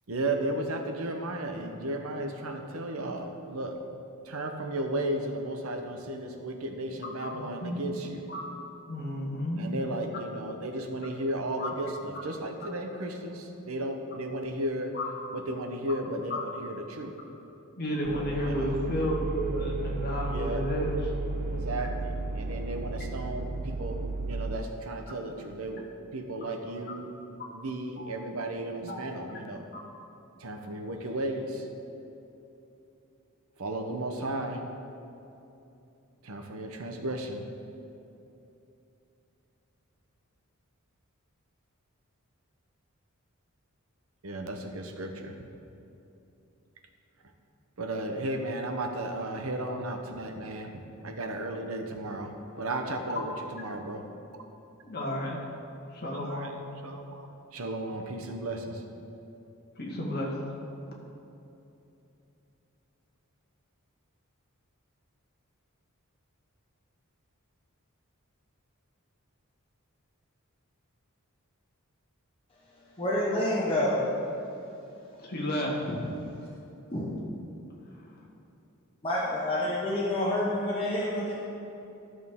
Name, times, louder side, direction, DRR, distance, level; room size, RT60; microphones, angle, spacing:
voice 1, 0.1-3.8 4.2-8.3 9.6-15.0 15.3-17.2 18.4-18.8 20.3-20.7 21.5-27.1 27.5-29.7 30.4-31.7 33.6-34.6 36.2-37.5 44.2-45.4 47.8-54.1 56.1-58.8, right 1 dB, 75° right, 5 dB, 0.8 m, -34 dB
voice 2, 7.2-7.7 8.3-8.4 8.9-9.7 11.6-11.7 14.9-15.1 16.3-16.4 17.8-21.0 28.0-28.1 28.8-29.1 54.8-55.4 55.9-56.5 59.8-60.3 75.2-76.0, equal, 50° left, -3 dB, 1.6 m, -32 dB
sound 1, 18.0-24.6, right 3 dB, 45° right, 0.4 m, -34 dB
voice 3, 73.0-74.2 76.9-77.0 79.0-81.3, left 1 dB, 25° left, -6 dB, 1.0 m, -28 dB
13.0 x 6.3 x 3.6 m, 2.9 s
head